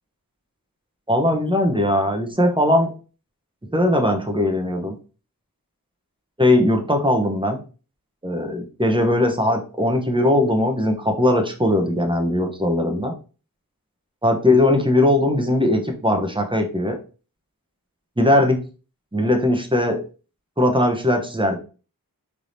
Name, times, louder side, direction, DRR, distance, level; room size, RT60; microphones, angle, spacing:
voice 1, 1.1-2.9 3.7-5.0 6.4-7.6 8.2-13.1 14.2-16.9 18.2-18.6 19.1-20.0 20.6-21.6, left 1 dB, 15° right, 4 dB, 0.9 m, -19 dB
4.5 x 3.4 x 2.7 m, 0.36 s
wide cardioid pair, 75°, 37 cm